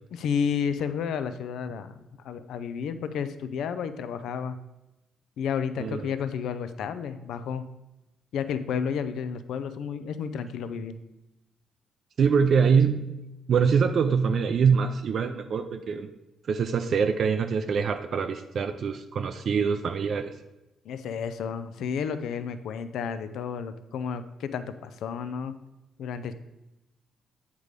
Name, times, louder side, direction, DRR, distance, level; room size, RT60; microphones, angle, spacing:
voice 1, 0.1-4.6 5.4-7.7 8.3-11.0 20.8-25.6 26.0-26.3, left 7 dB, 75° left, 12 dB, 0.4 m, -31 dB
voice 2, 12.2-13.1 13.5-16.1 16.5-20.3, right 6 dB, 55° right, 7 dB, 0.4 m, -24 dB
8.2 x 3.3 x 5.1 m, 0.96 s
cardioid pair, 90°, 0 cm